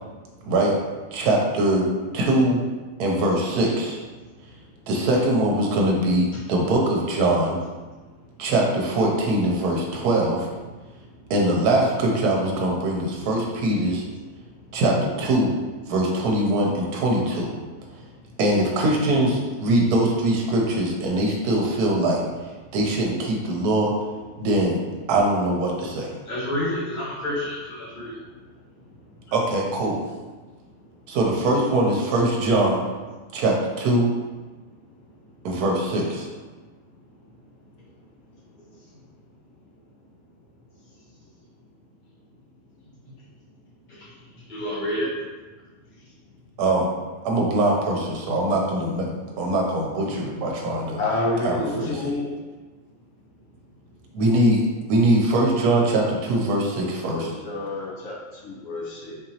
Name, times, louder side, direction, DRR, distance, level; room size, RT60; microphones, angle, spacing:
voice 1, 1.1-1.9 2.1-2.6 3.0-4.0 4.9-7.6 8.4-10.5 11.3-14.0 14.7-15.5 15.9-17.5 18.4-22.2 22.7-23.9 24.4-24.8 25.1-26.1 29.3-30.0 31.1-32.8 33.3-34.1 35.4-36.3 46.6-46.9 47.2-51.0 51.4-52.1 54.1-54.6 54.9-57.3, right 1 dB, 75° right, -1 dB, 1.1 m, -22 dB
voice 2, 26.3-28.2 43.9-44.1 44.5-45.1, left 1 dB, 35° left, -10 dB, 1.0 m, -29 dB
voice 3, 51.0-52.4 57.1-59.2, left 2 dB, 60° left, -5 dB, 1.1 m, -29 dB
3.8 x 2.9 x 2.8 m, 1.3 s
omnidirectional pair, 1.7 m